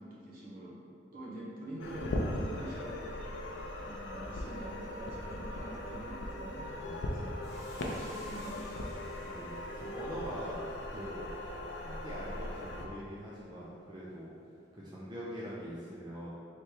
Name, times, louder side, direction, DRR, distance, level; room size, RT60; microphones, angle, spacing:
voice 1, 0.0-3.2 3.8-7.3 7.8-9.3, right 1 dB, 50° right, -7 dB, 1.1 m, -45 dB
sound 1, 1.8-12.9, left 1 dB, 80° left, 0.5 m, -39 dB
voice 2, 6.8-7.2 7.6-7.7 9.2-10.6 10.9-11.3 11.7-14.3 14.7-16.3, equal, 25° right, -8 dB, 0.5 m, -43 dB
Hiss, 7.4-11.9, equal, ahead, 1.1 m, -57 dB
3.3 x 3.2 x 4.5 m, 2.6 s
head